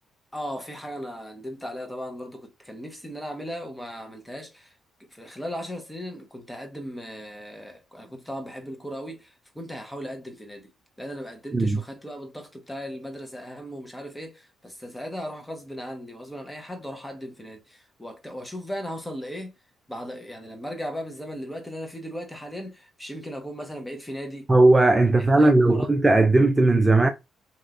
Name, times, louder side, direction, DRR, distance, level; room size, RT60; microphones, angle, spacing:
voice 1, 0.3-4.7 5.0-10.7 11.0-19.5 19.9-24.5 25.4-25.9, equal, 10° left, 1.1 m, -37 dB
voice 2, 24.5-27.1, right 2 dB, 20° right, 0.5 m, -17 dB
3.0 x 2.8 x 2.5 m
supercardioid pair, 60°, 0 cm